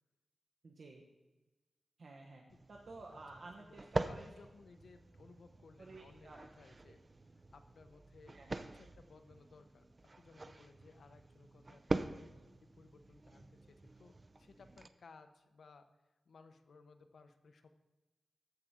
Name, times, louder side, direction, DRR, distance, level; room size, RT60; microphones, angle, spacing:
voice 1, 0.6-1.0 2.0-2.4 2.7-4.3 5.8-6.4 8.3-8.5, right 3 dB, 55° right, 0 dB, 1.0 m, -53 dB
sound 1, 2.5-14.9, right 2 dB, 25° right, 0.4 m, -44 dB
voice 2, 3.7-7.0 7.5-8.4 8.6-12.1 12.6-15.9 16.3-17.7, left 4 dB, 75° left, 7 dB, 0.8 m, -61 dB
14.5 x 4.9 x 5.6 m, 1.1 s
wide cardioid pair, 160°, 0 cm